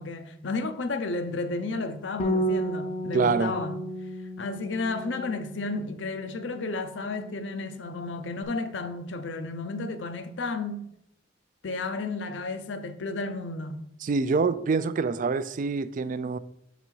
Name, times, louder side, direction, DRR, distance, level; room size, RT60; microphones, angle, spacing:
voice 1, 0.0-3.8 4.4-10.9 11.6-13.8, left 3 dB, 80° left, 0.6 m, -32 dB
Bass guitar, 2.2-8.4, equal, 35° left, 0.5 m, -33 dB
voice 2, 3.1-3.6 14.0-16.4, right 4 dB, 45° right, 0.3 m, -26 dB
6.4 x 4.0 x 4.5 m
head